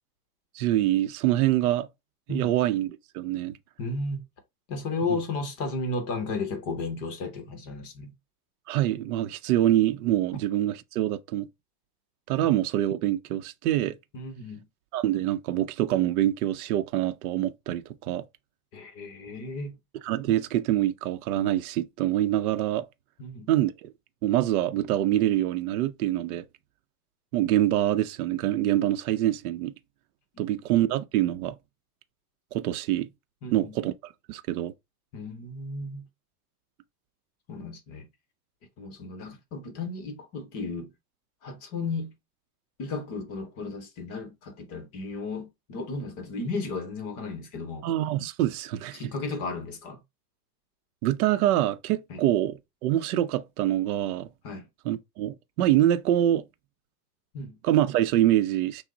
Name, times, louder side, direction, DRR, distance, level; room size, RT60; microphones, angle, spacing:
voice 1, 0.5-1.9 2.3-2.9 3.1-3.6 5.1-5.2 8.7-11.5 12.3-14.0 14.9-18.2 20.0-22.8 23.5-23.9 24.2-26.4 27.3-29.7 30.4-31.5 32.5-33.1 33.5-34.7 47.8-49.0 51.0-52.5 52.8-54.3 54.9-56.4 57.6-58.8, right 13 dB, 65° right, 0.6 m, -25 dB
voice 2, 3.8-4.3 4.7-8.1 14.1-14.7 18.7-19.8 23.2-23.5 30.3-30.5 33.4-33.8 35.1-36.1 37.5-38.1 38.8-40.9 41.4-42.1 42.8-47.9 48.9-50.0 52.1-52.2 54.4-54.7 57.3-57.6, left 3 dB, 30° left, 0.8 m, -34 dB
5.9 x 2.1 x 3.8 m
supercardioid pair, 165°, 47 cm